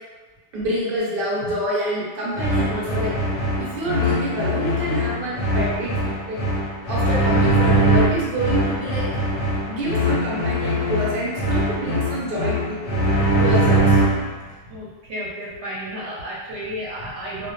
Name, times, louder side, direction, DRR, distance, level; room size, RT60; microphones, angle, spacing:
voice 1, 0.5-3.1 3.6-6.4 6.9-9.0 9.7-14.1, equal, 55° right, -6 dB, 0.9 m, -27 dB
sound 1, 2.3-14.4, right 1 dB, 85° left, 0.9 m, -21 dB
voice 2, 14.7-17.5, equal, 85° right, -6 dB, 0.9 m, -32 dB
2.1 x 2.0 x 2.9 m, 1.3 s
omnidirectional pair, 1.2 m